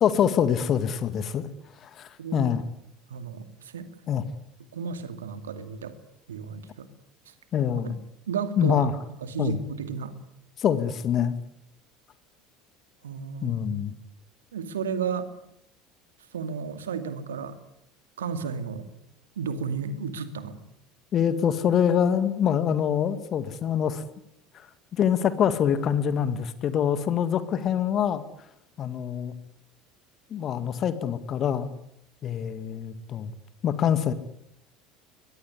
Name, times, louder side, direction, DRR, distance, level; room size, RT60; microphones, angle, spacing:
voice 1, 0.0-1.4 1.8-2.6 4.1-4.2 7.5-7.9 8.6-9.0 9.4-9.6 10.6-11.4 13.4-13.9 21.1-24.0 24.5-24.7 24.9-28.2 28.8-29.3 30.3-31.7 32.2-33.3 33.6-34.1, left 8 dB, 40° left, 12 dB, 2.0 m, -25 dB
voice 2, 2.2-2.5 3.1-3.9 4.7-5.9 6.3-6.9 7.3-7.4 7.8-8.0 8.3-8.9 9.2-10.1 13.0-13.6 14.5-15.3 16.3-17.6 18.2-18.9 19.4-20.6, right 6 dB, 75° right, 10 dB, 2.4 m, -33 dB
23.0 x 21.0 x 9.8 m, 0.78 s
figure-of-eight pair, 70°, 0 cm